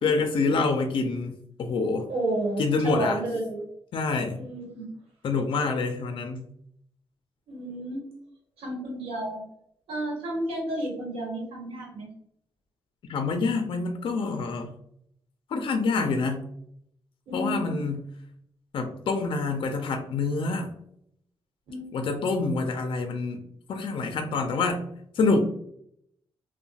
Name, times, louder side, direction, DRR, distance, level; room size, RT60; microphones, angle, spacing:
voice 1, 0.0-2.1 2.6-3.2 3.9-4.4 5.2-6.4 13.1-14.7 15.5-16.5 17.3-18.1 18.7-20.7 21.9-23.4 23.7-24.8 25.1-25.4, left 4 dB, 65° left, 5 dB, 0.3 m, -26 dB
voice 2, 2.1-3.6 4.3-4.9 7.5-8.0 8.6-9.4 9.9-12.1 17.3-17.8 21.7-21.9, right 1 dB, 85° right, -2 dB, 1.0 m, -31 dB
2.8 x 2.1 x 2.7 m, 0.72 s
cardioid pair, 100°, 9 cm